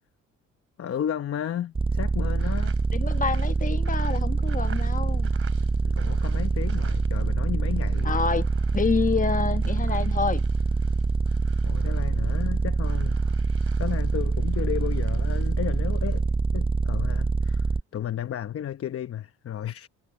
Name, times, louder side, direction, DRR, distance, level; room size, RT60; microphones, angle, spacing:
voice 1, 0.8-2.8 5.6-8.2 11.6-13.2 13.8-16.3 16.5-19.9, left 10 dB, 50° left, 0.9 m, -33 dB
sound 1, 1.7-17.8, right 3 dB, 15° right, 0.8 m, -25 dB
sound 2, 2.3-7.4 7.6-16.2, right 7 dB, 45° right, 2.8 m, -51 dB
voice 2, 2.9-5.3 8.0-8.5 8.7-10.4, left 5 dB, 25° left, 1.1 m, -27 dB
cardioid pair, 90°, 30 cm